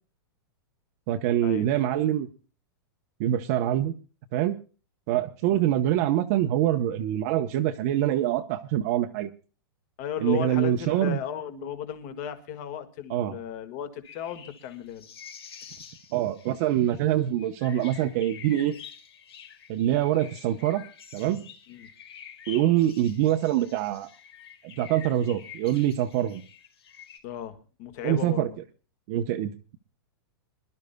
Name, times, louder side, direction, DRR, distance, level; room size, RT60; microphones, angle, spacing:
voice 1, 1.1-2.3 3.2-3.9 4.3-4.6 5.1-9.3 10.2-11.2 13.1-13.4 16.1-18.8 19.7-20.8 21.1-21.5 22.5-24.1 24.6-26.4 28.0-28.5 29.1-29.8, right 12 dB, 40° right, 5 dB, 0.8 m, -25 dB
voice 2, 10.0-15.1 21.7-21.9 27.2-28.6, left 10 dB, 40° left, 8 dB, 1.7 m, -35 dB
sound 1, 14.0-27.2, left 8 dB, 90° left, 4.8 m, -48 dB
26.0 x 12.0 x 2.2 m, 0.36 s
supercardioid pair, 160°, 13 cm